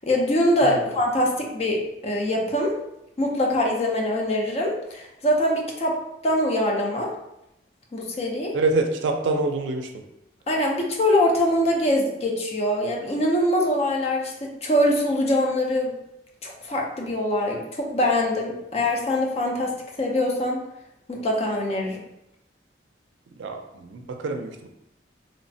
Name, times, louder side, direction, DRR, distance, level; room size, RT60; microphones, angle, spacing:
voice 1, 0.0-2.8 3.2-7.1 7.9-8.6 10.5-15.9 16.4-20.6 21.1-22.1, left 1 dB, 35° left, 0 dB, 0.4 m, -23 dB
voice 2, 0.6-0.9 8.5-10.0 23.4-24.7, right 3 dB, 80° right, 5 dB, 0.4 m, -26 dB
3.2 x 2.0 x 2.6 m, 0.85 s
head